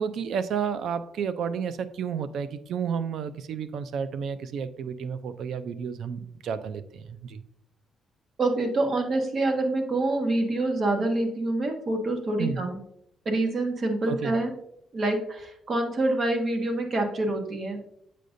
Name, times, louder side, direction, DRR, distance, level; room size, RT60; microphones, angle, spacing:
voice 1, 0.0-7.4 12.4-12.6 14.1-14.3, right 7 dB, 70° right, 13 dB, 0.4 m, -31 dB
voice 2, 8.4-12.8 13.2-14.5 14.9-17.8, right 2 dB, 45° right, 4 dB, 1.2 m, -26 dB
7.6 x 5.0 x 2.6 m, 0.74 s
cardioid pair, 90°, 0 cm